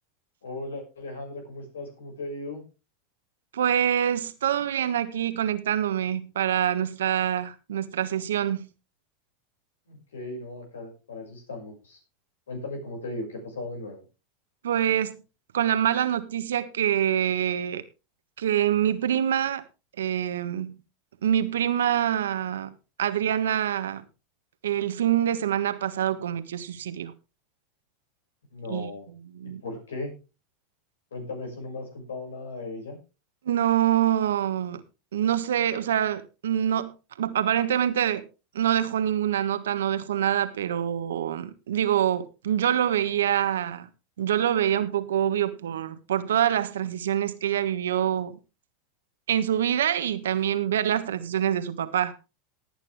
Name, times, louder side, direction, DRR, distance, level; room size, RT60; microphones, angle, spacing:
voice 1, 0.4-2.6 9.9-12.0 12.5-14.0 28.5-29.1 29.4-30.1 31.1-33.0, left 2 dB, 90° left, 6.2 m, -37 dB
voice 2, 3.5-8.7 14.6-15.2 15.5-17.8 18.4-19.6 20.0-20.8 21.2-22.7 23.0-24.0 24.6-27.1 28.7-28.9 29.3-29.6 33.4-34.8 35.1-38.3 38.5-43.9 44.2-48.4 49.3-52.1, right 10 dB, 85° right, 1.4 m, -25 dB
18.0 x 9.1 x 3.5 m
hypercardioid pair, 100°, 0 cm